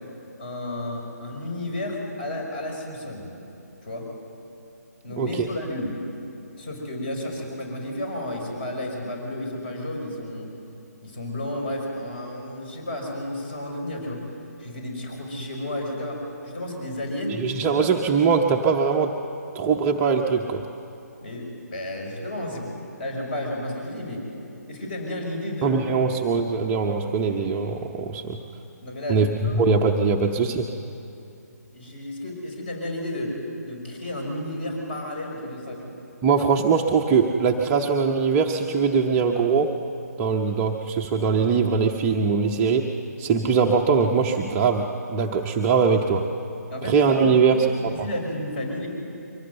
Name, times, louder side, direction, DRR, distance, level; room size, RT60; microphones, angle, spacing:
voice 1, 0.4-3.3 3.8-4.1 5.0-5.9 6.6-10.5 11.0-14.2 14.6-17.4 21.2-22.7 23.0-24.2 24.7-25.8 28.8-29.8 31.7-33.3 33.6-35.9 46.7-47.3 48.0-48.9, left 1 dB, 35° left, 1 dB, 5.6 m, -32 dB
voice 2, 5.2-5.5 17.3-19.2 19.5-20.6 25.6-28.4 29.1-30.7 36.2-39.7 40.2-42.9 43.2-46.2 46.8-47.7, right 5 dB, 15° right, 1 dB, 0.7 m, -21 dB
23.5 x 18.0 x 8.0 m, 2.8 s
figure-of-eight pair, 145°, 9 cm